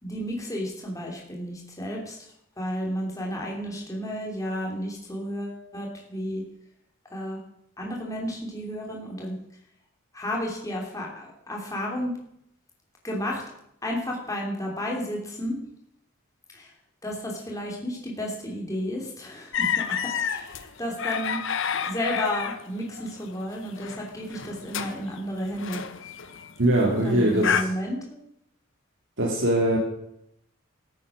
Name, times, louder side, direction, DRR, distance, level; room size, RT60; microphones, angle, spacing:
voice 1, 0.0-6.4 7.1-7.4 7.8-9.4 10.1-12.1 13.0-13.4 13.8-15.6 16.5-16.7 17.0-21.4 21.9-25.8 27.0-28.2, equal, 15° left, -1 dB, 3.1 m, -32 dB
sound 1, 19.5-27.6, left 7 dB, 60° left, 0.9 m, -30 dB
voice 2, 26.6-27.7 29.2-29.8, right 1 dB, 60° right, -2 dB, 2.2 m, -22 dB
14.0 x 8.5 x 6.3 m, 0.75 s
head